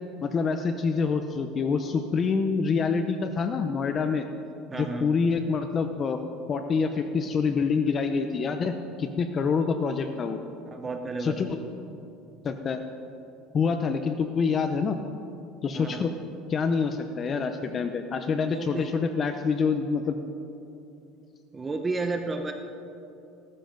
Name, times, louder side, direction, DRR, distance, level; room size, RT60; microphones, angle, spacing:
voice 1, 0.2-4.2 4.7-6.2 6.5-10.4 11.2-11.6 12.4-12.8 13.5-15.0 15.6-16.1 16.5-20.2, left 5 dB, 25° left, 7 dB, 0.6 m, -26 dB
voice 2, 4.7-5.1 10.7-11.5 15.7-16.0 18.4-18.9 21.5-22.5, right 3 dB, 15° right, 5 dB, 0.8 m, -32 dB
16.5 x 13.0 x 5.2 m, 2.8 s
cardioid pair, 150°, 0 cm